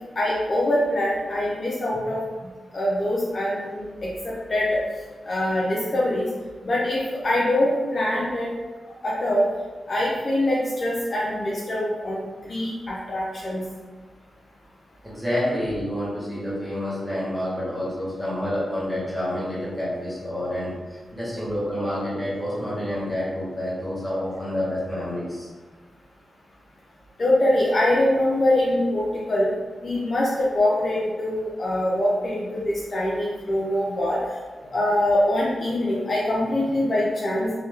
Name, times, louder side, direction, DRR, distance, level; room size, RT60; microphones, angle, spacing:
voice 1, 0.2-2.2 2.7-4.8 5.3-6.3 6.6-8.5 9.0-9.5 9.9-13.6 27.2-29.5 29.8-34.2 34.7-37.6, left 1 dB, 40° left, -6 dB, 0.6 m, -23 dB
voice 2, 15.0-25.5, left 1 dB, ahead, -9 dB, 1.4 m, -28 dB
3.3 x 2.8 x 3.6 m, 1.4 s
wide cardioid pair, 140°, 0 cm